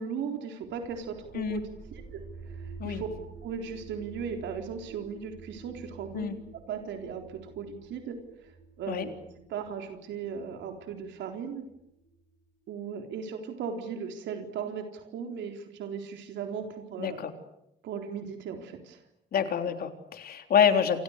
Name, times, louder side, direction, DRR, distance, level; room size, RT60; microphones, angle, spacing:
voice 1, 0.0-3.1 3.4-6.3 6.7-8.5 8.8-9.1 9.5-11.7 12.7-17.2 17.8-19.0, right 6 dB, 85° right, 4 dB, 3.9 m, -37 dB
sound 1, 0.6-12.4, right 4 dB, 45° right, 8.0 m, -49 dB
voice 2, 17.0-17.3 19.3-21.0, left 8 dB, 55° left, 6 dB, 3.8 m, -27 dB
29.0 x 28.0 x 6.7 m, 0.83 s
cardioid pair, 145°, 18 cm